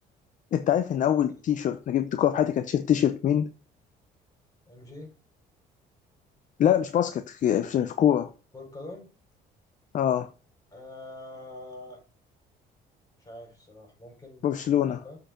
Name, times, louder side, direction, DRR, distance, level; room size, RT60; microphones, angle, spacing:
voice 1, 0.5-3.5 6.6-8.3 9.9-10.3 14.4-15.0, left 10 dB, 50° left, 0.6 m, -24 dB
voice 2, 4.7-5.1 8.5-9.1 10.7-12.0 13.2-14.7 15.0-15.2, left 2 dB, 20° left, 4.7 m, -44 dB
7.6 x 4.7 x 5.0 m
cardioid pair, 110°, 17 cm